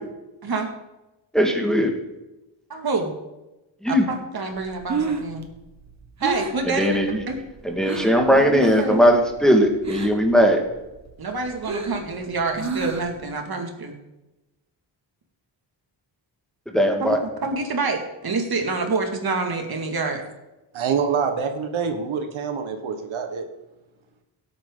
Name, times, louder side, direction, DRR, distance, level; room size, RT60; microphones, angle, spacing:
voice 1, 1.3-1.9 3.8-4.0 6.8-7.2 7.6-10.6 16.7-17.2, equal, ahead, 2 dB, 1.9 m, -18 dB
voice 2, 2.7-3.1 3.9-5.5 6.2-7.4 8.3-9.0 11.2-13.9 17.0-17.2 17.4-20.2, right 3 dB, 50° right, 3 dB, 2.3 m, -27 dB
Breathing, 4.6-8.2 8.6-9.1 9.3-10.3 10.7-13.2, right 4 dB, 35° right, 1.6 m, -30 dB
voice 3, 20.7-23.5, right 6 dB, 85° right, 5 dB, 1.6 m, -26 dB
16.5 x 8.6 x 3.9 m, 1.0 s
cardioid pair, 105°, 46 cm